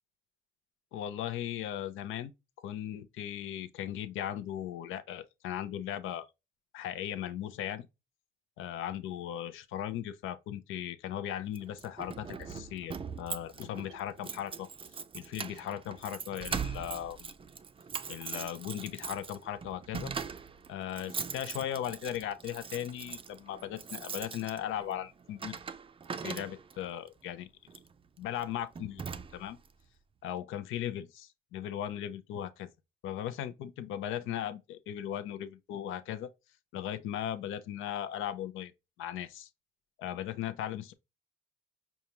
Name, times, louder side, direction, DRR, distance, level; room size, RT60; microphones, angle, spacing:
voice 1, 0.9-2.3 2.6-6.3 6.7-7.9 8.6-14.7 15.1-17.3 18.1-20.1 20.7-25.6 26.2-27.5 28.2-29.0 29.3-29.6 30.2-32.7 33.0-36.3 36.7-38.7 39.0-39.5 40.0-40.9, left 11 dB, 85° left, 0.5 m, -37 dB
Keys jangling, 11.5-26.9 27.7-27.9 28.4-28.5 28.7-29.7, right 6 dB, 25° right, 0.4 m, -41 dB
5.1 x 2.4 x 2.8 m
cardioid pair, 90°, 20 cm